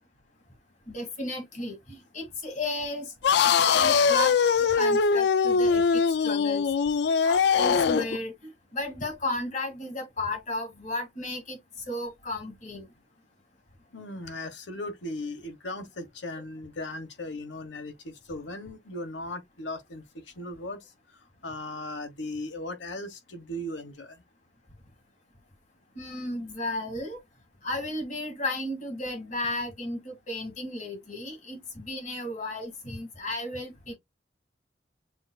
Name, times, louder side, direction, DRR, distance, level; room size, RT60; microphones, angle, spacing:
voice 1, 0.9-3.1 3.6-6.6 6.9-8.3 8.7-11.6 11.9-12.9 25.9-27.2 27.6-34.0, left 1 dB, 45° left, 2.0 m, -34 dB
sound 1, 3.2-8.2, left 6 dB, 65° left, 0.3 m, -22 dB
voice 2, 13.9-20.0 20.4-20.8 21.4-24.2, left 1 dB, 85° left, 1.2 m, -37 dB
7.1 x 2.6 x 2.3 m
head